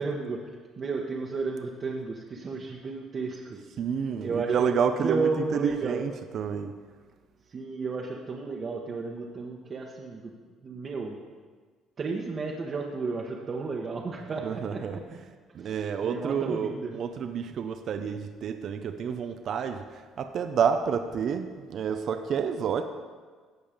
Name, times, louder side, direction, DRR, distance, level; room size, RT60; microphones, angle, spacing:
voice 1, 0.0-3.7 4.2-4.7 5.0-6.0 7.5-10.3 10.6-11.2 12.0-15.0 15.6-16.9, right 4 dB, 45° right, -2 dB, 1.2 m, -33 dB
voice 2, 3.8-6.8 14.4-22.9, right 7 dB, 60° right, 8 dB, 0.6 m, -29 dB
16.0 x 5.5 x 5.1 m, 1.5 s
supercardioid pair, 75°, 0 cm